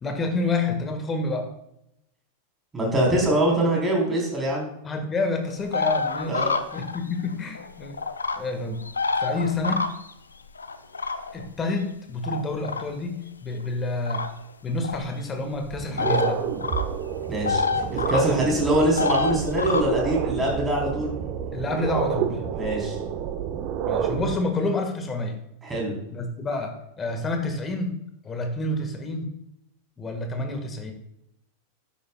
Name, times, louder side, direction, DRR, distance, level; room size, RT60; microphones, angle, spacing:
voice 1, 0.0-1.5 4.8-8.0 8.4-8.8 9.2-9.9 11.3-14.3 14.6-16.4 21.5-22.4 23.9-25.4 26.1-29.3 30.0-30.9, left 2 dB, 20° left, 5 dB, 1.7 m, -28 dB
voice 2, 2.7-4.7 6.3-6.6 17.3-17.6 17.9-21.1 22.5-23.0 25.6-26.0, right 1 dB, 15° right, -1 dB, 4.1 m, -23 dB
sound 1, 5.7-7.3 7.5-8.4 8.8-10.1 10.6-11.4 12.2-12.8 14.1-14.3 14.8-15.0 16.0-16.3 16.6-16.9 17.2-18.2 19.0-19.8, left 4 dB, 75° left, 0.6 m, -27 dB
sound 2, 14.9-15.0 15.5-24.3, right 8 dB, 40° right, 1.0 m, -29 dB
12.5 x 10.0 x 2.4 m, 0.80 s
figure-of-eight pair, 90°, 0 cm